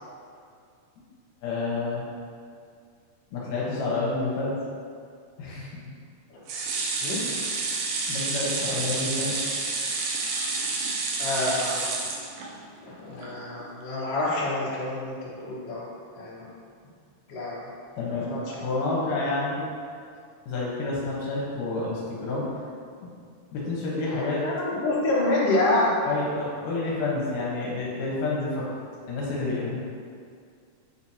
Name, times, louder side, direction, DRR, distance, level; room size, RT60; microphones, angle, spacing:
voice 1, 1.4-2.0 3.3-4.6 5.4-5.8 8.1-9.3 18.0-19.6 20.5-22.5 23.0-23.1 23.5-24.4 26.1-28.7 29.1-29.8, left 3 dB, 80° left, -6 dB, 2.8 m, -29 dB
sound 1, 6.5-12.8 13.2-13.3 13.6-13.7, right 3 dB, 70° right, 1.7 m, -29 dB
voice 2, 11.2-11.9 12.8-15.9 16.2-16.5 17.3-17.6 18.3-18.6 24.4-26.0, left 2 dB, 55° left, -8 dB, 2.5 m, -27 dB
9.1 x 4.9 x 2.9 m, 2.2 s
omnidirectional pair, 3.7 m